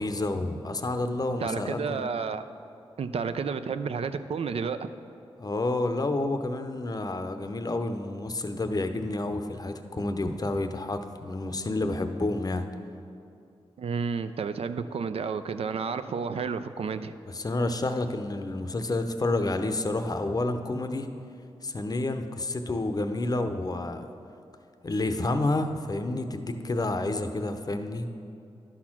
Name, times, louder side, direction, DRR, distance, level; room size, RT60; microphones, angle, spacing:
voice 1, 0.0-2.0 5.4-12.7 17.3-21.1 21.6-24.1 24.8-28.1, left 2 dB, 35° left, 8 dB, 0.6 m, -29 dB
voice 2, 1.3-2.4 3.0-4.9 13.8-17.1, right 5 dB, 65° right, 11 dB, 0.4 m, -31 dB
11.0 x 4.3 x 5.9 m, 2.5 s
cardioid pair, 55°, 11 cm